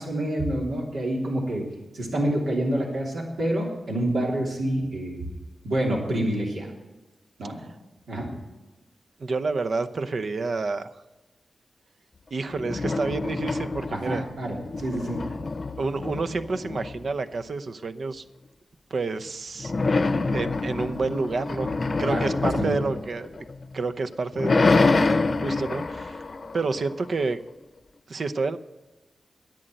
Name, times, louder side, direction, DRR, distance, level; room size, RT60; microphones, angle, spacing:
voice 1, 0.0-1.6 1.9-5.2 5.6-6.7 7.4-7.6 8.1-8.3 13.9-15.2 22.1-22.8, right 1 dB, 85° right, -2 dB, 3.2 m, -27 dB
voice 2, 9.2-10.9 12.3-14.3 15.7-18.2 18.9-19.7 20.3-23.3 23.7-26.2 26.5-27.4 28.1-28.6, right 3 dB, 65° right, 9 dB, 0.7 m, -29 dB
sound 1, 12.5-14.2 14.5-17.3 19.6-23.7 24.1-27.2, left 3 dB, 55° left, 0.7 m, -26 dB
10.5 x 7.8 x 9.0 m, 1.1 s
cardioid pair, 55°, 0 cm